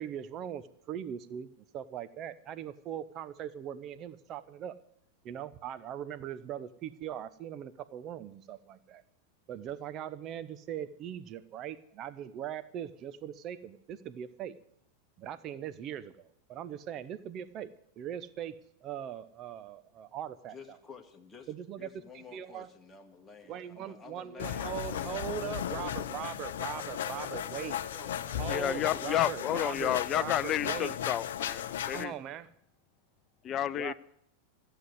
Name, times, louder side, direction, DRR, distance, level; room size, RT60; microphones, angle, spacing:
voice 1, 0.0-4.8 5.2-9.0 9.5-14.5 15.2-17.7 18.0-20.8 21.5-21.9 22.1-22.7 23.4-27.8 28.4-31.0 31.9-32.5 33.8-33.9, right 10 dB, 35° right, 0.9 m, -40 dB
voice 2, 20.5-26.1 26.7-29.3, left 5 dB, 10° left, 1.9 m, -51 dB
sound 1, 24.4-32.0, left 10 dB, 60° left, 0.7 m, -36 dB
voice 3, 28.5-32.1 33.4-33.9, left 12 dB, 30° left, 0.5 m, -31 dB
15.0 x 8.0 x 9.7 m
figure-of-eight pair, 90°, 0 cm